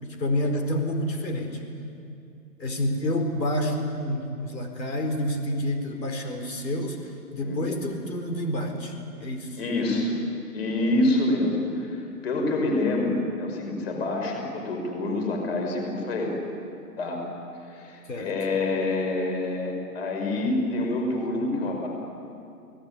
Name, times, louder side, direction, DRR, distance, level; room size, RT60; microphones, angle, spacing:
voice 1, 0.0-1.6 2.6-9.6 18.1-18.3, left 1 dB, 85° left, 5 dB, 4.6 m, -28 dB
voice 2, 7.4-7.8 9.6-10.2 10.5-16.4 17.0-17.2 17.6-21.9, left 2 dB, 40° left, 2 dB, 5.5 m, -27 dB
28.5 x 18.5 x 9.8 m, 2.5 s
hypercardioid pair, 170°, 48 cm